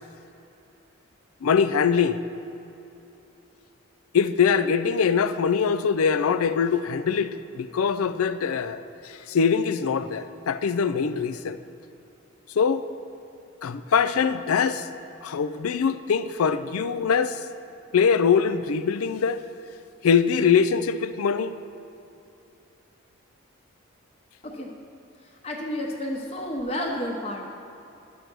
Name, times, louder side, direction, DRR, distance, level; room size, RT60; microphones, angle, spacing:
voice 1, 1.4-2.2 4.1-11.6 12.6-12.9 13.6-14.9 15.2-17.4 17.9-19.4 20.0-21.5, left 6 dB, 90° left, 13 dB, 0.4 m, -23 dB
voice 2, 25.4-27.6, left 1 dB, 30° left, -1 dB, 0.9 m, -31 dB
11.5 x 6.6 x 6.1 m, 2.8 s
head